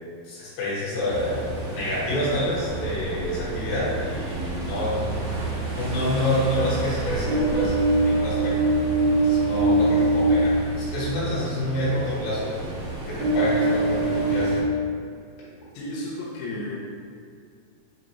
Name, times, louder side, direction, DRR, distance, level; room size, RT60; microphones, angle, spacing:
voice 1, 0.2-5.3 5.7-8.7 9.2-12.7 13.1-14.6, left 1 dB, 70° left, -8 dB, 2.8 m, -28 dB
Ocean, 1.1-14.6, right 2 dB, 90° right, 1.5 m, -25 dB
Piano, 6.5-10.0, right 2 dB, 75° right, 1.7 m, -37 dB
voice 2, 15.7-16.8, left 1 dB, 85° left, -5 dB, 1.8 m, -33 dB
6.4 x 2.4 x 2.9 m, 2.3 s
omnidirectional pair, 4.7 m